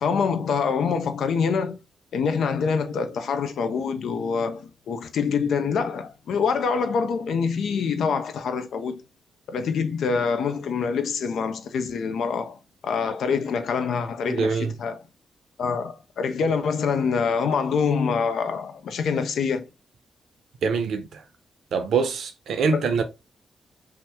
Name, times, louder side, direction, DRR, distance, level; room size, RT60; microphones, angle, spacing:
voice 1, 0.0-1.8 2.1-9.0 9.5-12.6 12.8-15.0 15.6-19.7 22.7-22.9, left 5 dB, 75° left, 0.4 m, -25 dB
voice 2, 14.3-14.8 20.6-21.2 21.7-23.0, right 5 dB, 75° right, 0.6 m, -24 dB
2.8 x 2.1 x 3.4 m
supercardioid pair, 50°, 0 cm